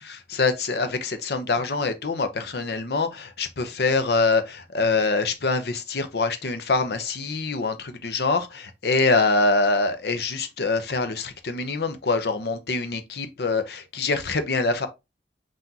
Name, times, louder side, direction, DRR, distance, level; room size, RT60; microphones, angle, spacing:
voice 1, 0.1-14.9, left 3 dB, 65° left, 0.6 m, -24 dB
5.8 x 2.5 x 2.7 m
head